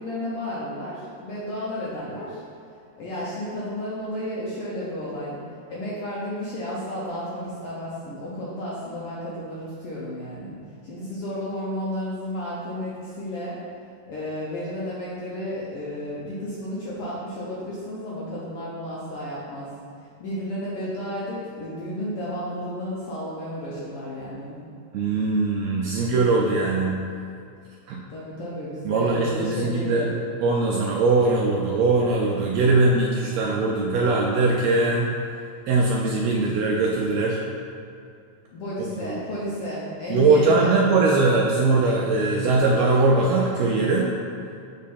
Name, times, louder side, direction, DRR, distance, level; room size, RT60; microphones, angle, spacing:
voice 1, 0.0-2.4 3.0-5.4 5.7-10.6 10.8-13.6 14.1-19.7 20.2-24.6 28.1-30.1 38.5-40.7, equal, 75° left, -7 dB, 1.3 m, -32 dB
voice 2, 24.9-27.0 27.9-28.0 28.8-30.1 30.4-35.1 35.7-37.4 39.1-39.2 40.1-44.1, right 3 dB, 85° right, -1 dB, 1.5 m, -21 dB
7.3 x 3.7 x 4.2 m, 2.5 s
omnidirectional pair, 3.6 m